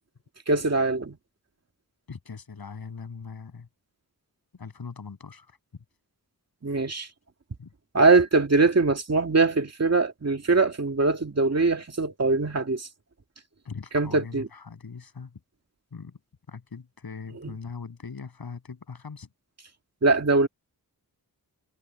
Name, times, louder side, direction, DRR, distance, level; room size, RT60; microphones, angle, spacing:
voice 1, 0.5-1.2 6.6-7.1 7.9-12.9 13.9-14.5 17.4-17.5 20.0-20.5, right 3 dB, 45° right, 2.2 m, -22 dB
voice 2, 2.1-3.7 4.5-5.6 7.6-7.7 13.6-15.4 15.9-16.2 16.5-19.3, left 5 dB, 75° left, 8.0 m, -40 dB
wide cardioid pair, 105°, 37 cm